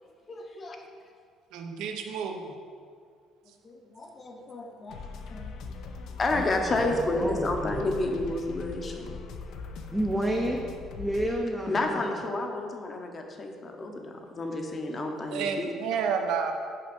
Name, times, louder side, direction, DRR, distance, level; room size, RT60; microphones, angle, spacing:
voice 1, 0.3-0.9 3.6-5.0 5.3-5.5 6.2-9.2 11.7-15.7, left 2 dB, 25° left, 3 dB, 0.8 m, -31 dB
voice 2, 1.5-2.5 15.3-16.5, right 6 dB, 80° right, 5 dB, 0.7 m, -30 dB
sound 1, 4.9-11.4, left 4 dB, 65° left, 0.6 m, -40 dB
voice 3, 6.3-7.9 9.9-10.6 10.9-12.0, right 1 dB, 5° right, -1 dB, 0.5 m, -30 dB
5.8 x 5.1 x 5.2 m, 2.2 s
cardioid pair, 140°, 0 cm